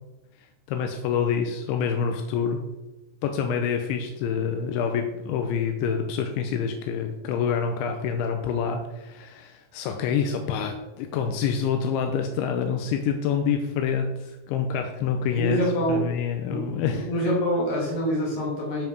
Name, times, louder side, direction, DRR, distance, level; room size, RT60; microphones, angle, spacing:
voice 1, 0.7-2.6 3.2-15.6 15.9-17.1, left 6 dB, 85° left, 5 dB, 3.1 m, -27 dB
voice 2, 15.3-16.0 16.5-18.8, equal, 40° left, -4 dB, 4.3 m, -26 dB
12.5 x 5.8 x 5.4 m, 1.0 s
omnidirectional pair, 5.5 m